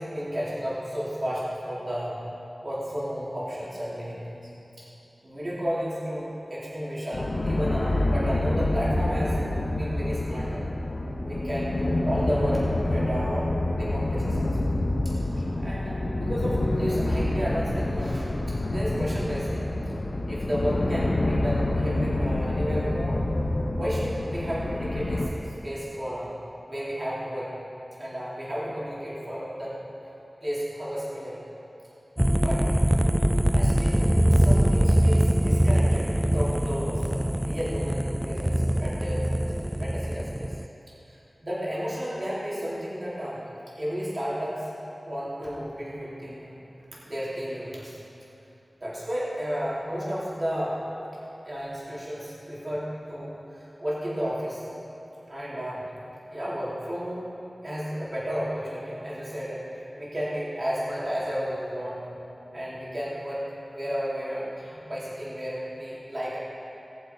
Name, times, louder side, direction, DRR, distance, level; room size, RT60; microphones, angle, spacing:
voice 1, 0.0-2.2 2.6-4.5 4.8-4.9 5.2-9.4 9.7-10.7 11.2-13.5 13.8-14.6 15.0-19.7 20.3-23.2 23.7-26.3 26.7-27.5 28.0-29.7 30.4-31.4 32.4-32.8 33.5-40.5 41.1-43.5 43.7-44.7 45.0-46.5 47.0-48.0 48.8-50.8 51.4-54.7 55.3-55.9 56.3-57.2 57.6-59.6 59.9-62.0 62.5-63.5 63.7-66.4, equal, 50° right, -8 dB, 3.4 m, -32 dB
sound 1, 7.1-25.3, left 1 dB, 70° left, 1.0 m, -27 dB
sound 2, 32.2-40.7, equal, 5° right, 0.3 m, -23 dB
19.5 x 7.4 x 4.6 m, 3.0 s
wide cardioid pair, 65°, 0 cm